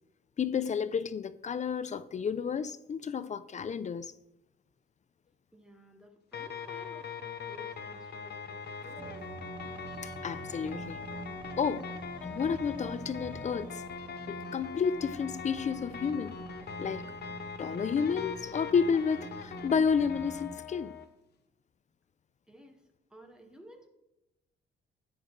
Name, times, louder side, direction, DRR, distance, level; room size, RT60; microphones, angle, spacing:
voice 1, 0.4-4.1 10.0-11.0 11.6-11.9 12.2-13.8 14.3-16.4 16.8-17.1 17.6-20.9, left 6 dB, 35° left, 0.5 m, -31 dB
voice 2, 5.5-9.2 22.5-23.9, equal, 5° right, 1.5 m, -54 dB
sound 1, 6.3-21.1, left 6 dB, 55° left, 1.0 m, -42 dB
sound 2, 9.0-20.6, right 4 dB, 25° right, 0.5 m, -46 dB
11.0 x 8.7 x 3.2 m
cardioid pair, 90°, 20 cm